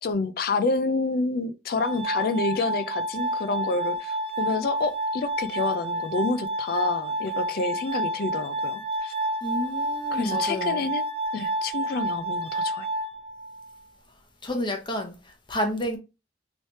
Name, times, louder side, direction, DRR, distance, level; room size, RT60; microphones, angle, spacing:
voice 1, 0.0-9.1 10.1-11.1 11.3-12.9, left 3 dB, 55° left, 0.4 m, -28 dB
Glass, 1.7-13.7, right 1 dB, 35° right, 1.4 m, -29 dB
voice 2, 9.4-10.9 14.4-16.0, left 1 dB, 25° left, 0.9 m, -30 dB
3.2 x 3.1 x 4.1 m
head